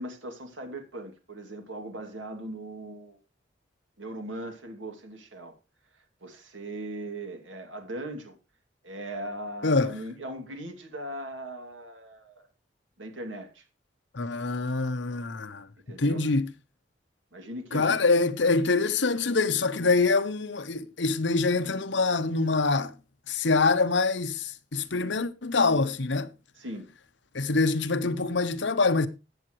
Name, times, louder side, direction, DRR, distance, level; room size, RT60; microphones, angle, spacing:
voice 1, 0.0-3.2 4.0-5.5 6.2-8.4 8.8-12.5 13.0-13.6 15.9-16.3 17.3-18.1 26.6-26.9, right 1 dB, 90° right, 2.6 m, -39 dB
voice 2, 9.6-9.9 14.1-16.5 17.7-22.9 23.3-26.3 27.3-29.1, left 3 dB, 75° left, 0.9 m, -25 dB
14.5 x 8.9 x 3.1 m
head